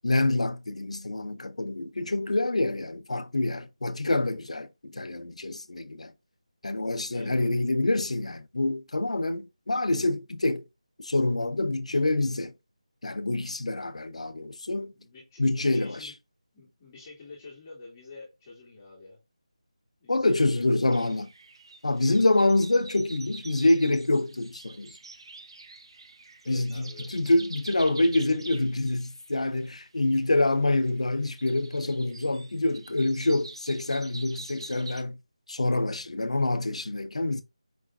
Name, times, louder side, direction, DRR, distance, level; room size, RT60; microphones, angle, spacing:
voice 1, 0.0-6.1 6.6-10.6 11.0-12.5 13.0-14.9 15.4-16.1 20.1-21.3 21.8-25.0 26.5-35.2 35.5-37.4, left 2 dB, 75° left, 0.6 m, -26 dB
voice 2, 7.1-7.5 14.8-16.1 16.5-19.2 20.0-21.0 26.4-27.1, left 3 dB, 20° left, 2.0 m, -48 dB
sound 1, 20.9-35.0, right 3 dB, 45° right, 0.7 m, -47 dB
5.0 x 3.4 x 2.3 m
figure-of-eight pair, 165°, 4 cm